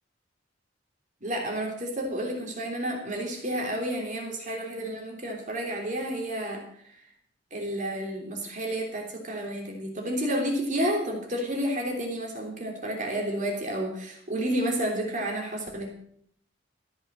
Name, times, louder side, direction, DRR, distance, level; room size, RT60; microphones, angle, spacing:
voice 1, 1.2-6.6 7.5-15.9, right 1 dB, 45° right, 1 dB, 3.4 m, -30 dB
14.0 x 8.2 x 7.4 m, 0.65 s
head